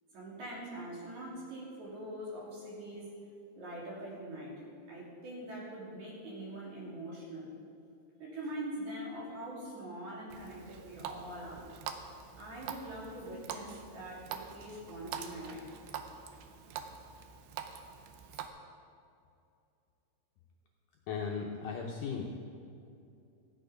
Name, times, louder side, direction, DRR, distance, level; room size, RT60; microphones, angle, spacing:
voice 1, 0.1-3.1 3.6-4.6 4.9-7.5 8.2-11.7 12.4-15.6 16.4-16.5 18.3-18.4, right 1 dB, 50° right, -6 dB, 3.9 m, -43 dB
Water tap faucet, 10.3-18.5, right 8 dB, 75° right, 2.5 m, -45 dB
voice 2, 21.1-22.3, left 5 dB, 75° left, -1 dB, 2.1 m, -36 dB
15.5 x 9.2 x 5.1 m, 2.6 s
omnidirectional pair, 4.6 m